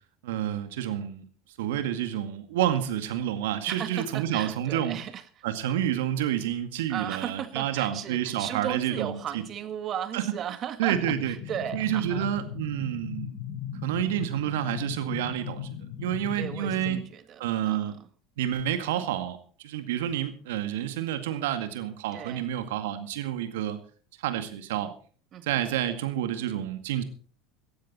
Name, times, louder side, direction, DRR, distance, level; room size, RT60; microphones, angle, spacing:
voice 1, 0.2-1.2 1.6-5.0 5.4-9.4 10.1-10.2 10.8-11.4 11.7-13.3 13.8-15.7 16.0-17.0 17.4-18.0 18.4-19.4 19.6-23.8 24.2-24.9 25.4-27.0, right 11 dB, 75° right, 9 dB, 2.0 m, -29 dB
voice 2, 3.7-5.4 6.9-12.3 16.3-18.1 22.1-22.5 25.3-25.6, right 9 dB, 45° right, 11 dB, 1.8 m, -36 dB
sound 1, 10.9-17.0, left 9 dB, 60° left, 5.5 m, -37 dB
18.0 x 13.0 x 4.3 m, 0.42 s
hypercardioid pair, 80°, 0 cm